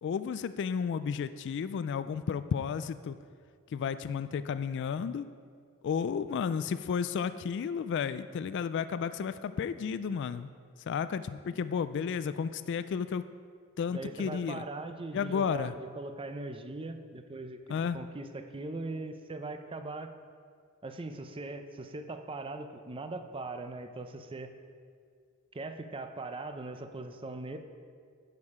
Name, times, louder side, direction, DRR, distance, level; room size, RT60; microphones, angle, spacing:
voice 1, 0.0-3.2 3.7-5.3 5.8-10.5 10.8-13.2 13.8-14.6 15.1-15.7 17.7-18.0, left 6 dB, 55° left, 13 dB, 0.3 m, -32 dB
voice 2, 13.9-17.6 17.9-20.1 20.8-24.5 25.5-27.6, right 2 dB, 25° right, 7 dB, 0.6 m, -40 dB
10.5 x 7.5 x 4.9 m, 2.1 s
head